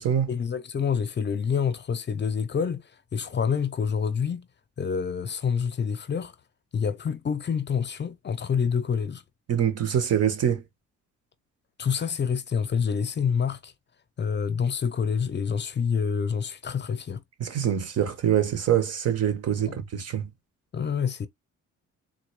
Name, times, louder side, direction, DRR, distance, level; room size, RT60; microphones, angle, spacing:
voice 1, 0.3-2.8 3.1-4.5 4.8-6.3 6.7-9.2 11.8-13.7 14.2-17.2 19.6-19.8 20.7-21.3, left 6 dB, 35° left, 0.6 m, -27 dB
voice 2, 9.5-10.6 17.4-20.3, right 9 dB, 55° right, 1.1 m, -25 dB
3.9 x 2.3 x 3.1 m
cardioid pair, 90°, 30 cm